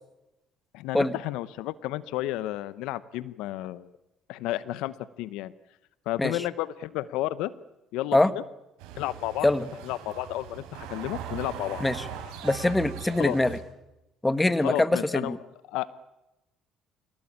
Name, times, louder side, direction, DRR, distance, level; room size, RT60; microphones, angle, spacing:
voice 1, 0.7-3.9 4.3-5.5 6.1-7.5 7.9-8.4 9.0-9.5 9.8-11.8 13.2-13.4 14.6-15.4 15.7-15.9, left 15 dB, 80° left, 17 dB, 0.8 m, -32 dB
sound 1, 8.8-13.6, right 8 dB, 85° right, 5.4 m, -40 dB
voice 2, 12.4-13.5 14.2-15.4, left 2 dB, 15° left, 14 dB, 1.5 m, -23 dB
27.0 x 17.0 x 8.7 m, 0.95 s
supercardioid pair, 70°, 0 cm